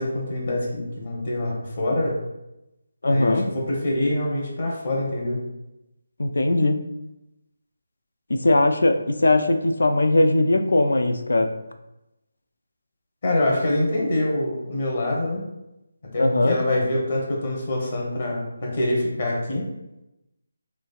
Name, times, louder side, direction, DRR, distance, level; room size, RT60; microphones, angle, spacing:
voice 1, 0.0-2.2 3.0-5.4 13.2-15.4 16.1-19.6, left 1 dB, 45° left, -2 dB, 0.8 m, -25 dB
voice 2, 3.0-3.4 6.2-6.8 8.3-11.6 16.2-16.6, left 2 dB, 70° left, 7 dB, 0.3 m, -20 dB
3.2 x 2.3 x 2.3 m, 0.92 s
figure-of-eight pair, 155°, 0 cm